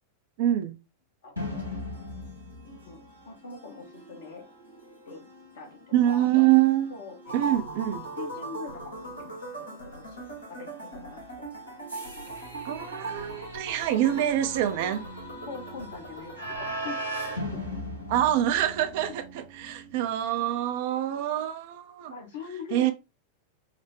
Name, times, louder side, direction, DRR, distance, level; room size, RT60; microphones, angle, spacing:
voice 1, 0.4-0.8 5.9-6.9 7.3-8.0 12.6-15.0 18.1-22.1 22.7-22.9, right 12 dB, 50° right, 0.4 m, -25 dB
sound 1, 1.4-19.1, equal, 85° right, 1.2 m, -41 dB
voice 2, 2.7-4.5 5.1-5.2 5.5-6.4 6.9-7.3 8.2-11.5 15.5-17.0 17.5-17.6 22.1-22.9, left 5 dB, 55° left, 1.0 m, -43 dB
sound 2, 7.2-16.8, right 3 dB, 80° left, 1.5 m, -39 dB
sound 3, 12.3-21.0, right 4 dB, 65° right, 1.0 m, -49 dB
5.0 x 2.1 x 3.0 m
figure-of-eight pair, 90°, 0 cm